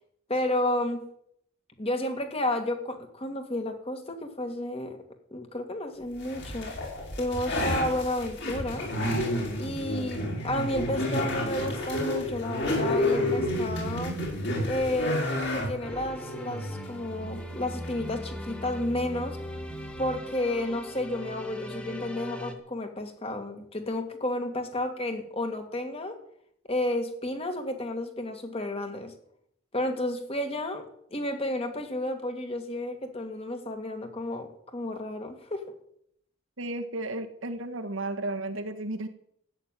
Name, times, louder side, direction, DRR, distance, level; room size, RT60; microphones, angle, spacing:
voice 1, 0.3-1.0 1.8-5.0 5.3-6.8 7.2-8.9 9.6-14.2 14.6-19.4 20.0-26.2 26.7-29.1 29.7-30.8 31.1-35.7, left 1 dB, 30° left, 5 dB, 2.2 m, -31 dB
sound 1, 6.2-20.1, left 1 dB, 60° left, 6.0 m, -31 dB
sound 2, 15.8-22.5, equal, 5° left, 1.5 m, -42 dB
voice 2, 36.6-39.1, right 2 dB, 75° right, 6 dB, 1.7 m, -33 dB
14.0 x 9.2 x 9.3 m, 0.71 s
head